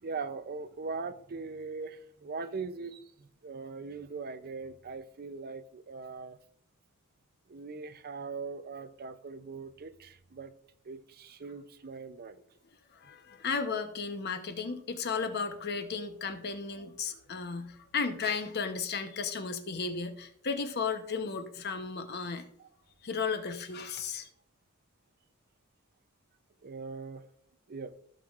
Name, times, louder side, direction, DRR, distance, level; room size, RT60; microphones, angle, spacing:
voice 1, 0.0-6.4 7.5-10.5 10.8-12.4 22.6-22.7 26.6-27.3 27.7-27.9, right 4 dB, 45° right, 0.5 m, -41 dB
voice 2, 12.9-22.4 23.0-24.3, left 5 dB, 50° left, 0.9 m, -34 dB
15.0 x 6.4 x 2.4 m
head